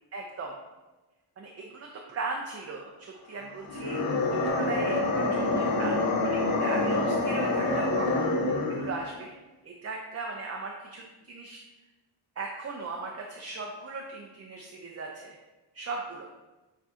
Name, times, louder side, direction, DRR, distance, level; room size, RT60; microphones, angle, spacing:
voice 1, 0.1-0.5 1.4-9.4 9.6-11.6 12.4-15.4 15.7-16.3, right 3 dB, 35° right, 0 dB, 0.4 m, -38 dB
sound 1, 3.6-9.0, left 2 dB, 50° left, 0.7 m, -26 dB
7.1 x 2.6 x 2.4 m, 1.1 s
wide cardioid pair, 145°, 47 cm